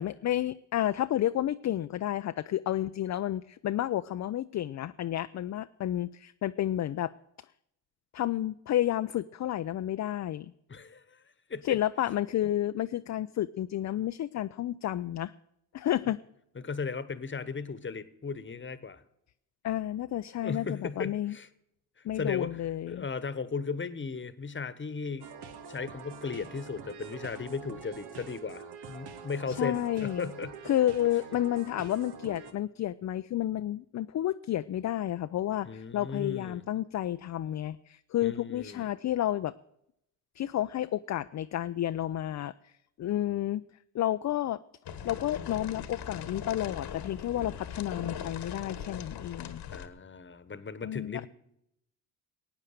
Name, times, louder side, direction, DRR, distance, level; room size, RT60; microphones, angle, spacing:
voice 1, 0.0-7.1 8.1-10.5 11.6-15.3 15.7-16.2 19.6-21.4 22.0-23.1 29.5-30.3 30.6-39.5 40.4-42.7 43.0-43.6 43.9-44.6 45.0-49.6 50.8-51.3, left 12 dB, 45° left, 11 dB, 0.5 m, -31 dB
voice 2, 10.7-11.8 16.6-19.0 20.4-21.5 22.0-22.6 22.9-25.3 25.7-30.5 35.6-36.6 38.2-38.9 49.7-51.3, left 5 dB, 30° left, 15 dB, 1.2 m, -36 dB
sound 1, 25.2-32.5, right 6 dB, 70° right, 1.3 m, -45 dB
sound 2, 44.9-49.9, left 8 dB, 65° left, 1.3 m, -40 dB
16.5 x 8.9 x 6.7 m, 0.78 s
supercardioid pair, 60°, 41 cm